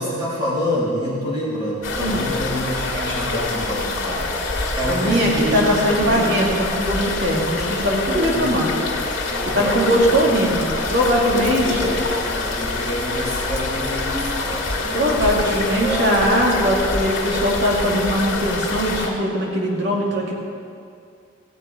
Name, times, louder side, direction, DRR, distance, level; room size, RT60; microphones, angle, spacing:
voice 1, 0.0-4.2 4.7-6.2 8.1-8.5 9.3-10.2 11.1-12.0 12.4-16.4, equal, 20° right, -8 dB, 3.7 m, -27 dB
sound 1, 1.8-19.1, left 3 dB, 80° left, 2.1 m, -26 dB
voice 2, 4.8-8.7 9.5-11.8 14.9-20.3, equal, 60° right, -3 dB, 2.4 m, -20 dB
16.5 x 8.1 x 5.1 m, 2.3 s
head